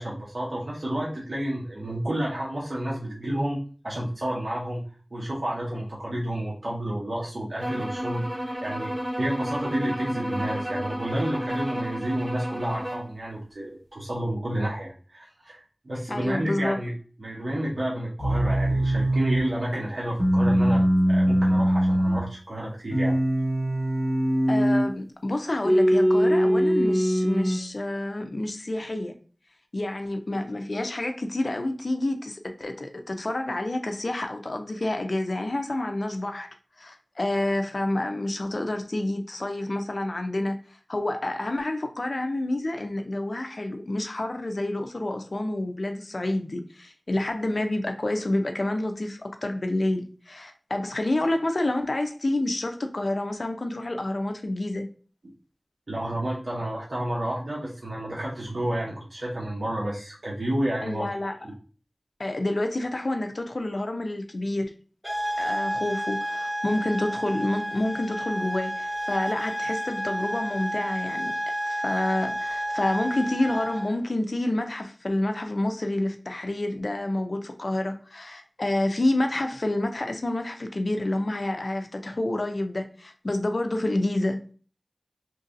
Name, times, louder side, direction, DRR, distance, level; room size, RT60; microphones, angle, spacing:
voice 1, 0.0-3.6 3.8-4.9 5.1-8.9 9.2-16.9 17.2-23.2 55.9-61.1, right 1 dB, 75° right, 0.8 m, -30 dB
sound 1, 7.6-13.1, equal, 30° right, 0.8 m, -32 dB
voice 2, 16.1-16.8 24.5-29.1 29.7-36.5 36.8-40.6 40.9-54.9 60.8-61.4 62.2-64.7 65.4-71.3 71.7-84.4, left 1 dB, 65° left, 0.5 m, -28 dB
sound 2, 18.2-19.5 20.2-22.3 22.9-24.9 25.7-27.6, equal, 20° left, 1.2 m, -22 dB
sound 3, 65.0-74.0, equal, 5° right, 1.5 m, -31 dB
3.0 x 2.6 x 2.5 m
wide cardioid pair, 45°, 0 cm